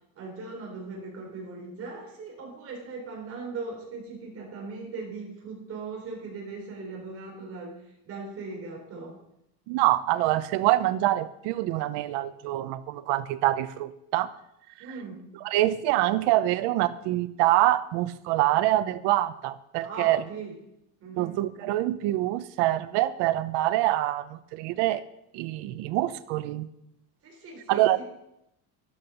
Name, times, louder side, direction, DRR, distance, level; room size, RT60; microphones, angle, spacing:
voice 1, 0.2-7.8 8.0-9.2 14.8-15.3 19.8-20.6 21.0-21.4 27.2-28.0, right 3 dB, 35° right, -1 dB, 4.3 m, -39 dB
voice 2, 9.7-14.3 15.4-20.2 21.2-25.0 25.3-26.7 27.7-28.0, right 15 dB, 90° right, 13 dB, 0.9 m, -25 dB
13.0 x 12.0 x 5.3 m, 0.82 s
cardioid pair, 180°, 40 cm